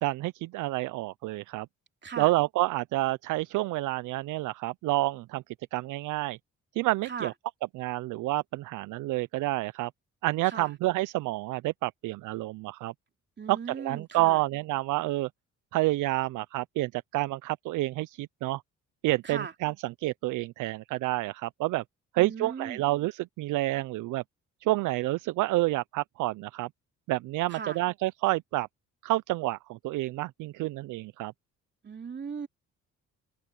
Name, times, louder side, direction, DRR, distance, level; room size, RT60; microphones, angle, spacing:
voice 1, 0.0-1.7 2.2-5.4 5.7-6.4 6.7-7.3 7.7-9.9 10.2-12.9 13.5-15.3 15.7-18.6 19.0-21.8 22.1-24.2 24.6-26.7 27.1-28.7 29.0-31.3, right 18 dB, 85° right, 0.5 m, -29 dB
voice 2, 13.4-14.4 19.2-19.5 22.2-22.8 27.5-27.8 31.8-32.5, right 6 dB, 35° right, 2.7 m, -38 dB
open air
cardioid pair, 90°, 30 cm